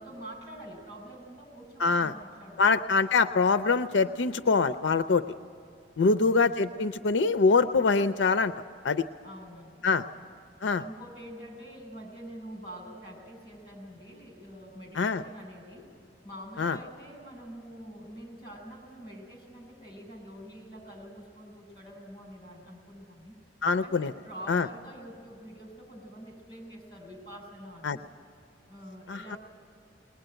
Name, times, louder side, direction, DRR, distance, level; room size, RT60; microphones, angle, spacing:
voice 1, 0.0-2.7 6.0-6.5 9.2-10.3 10.8-15.9 16.2-23.4 23.8-28.0 28.7-29.4, equal, 25° left, 1 dB, 6.8 m, -46 dB
voice 2, 1.8-2.1 2.6-5.2 6.0-8.5 8.8-9.0 9.8-10.0 10.6-10.8 15.0-15.2 16.6-16.8 23.6-24.1 24.5-24.7 27.8-28.0 29.1-29.4, left 4 dB, 80° left, 12 dB, 0.5 m, -24 dB
21.0 x 20.5 x 9.0 m, 2.6 s
head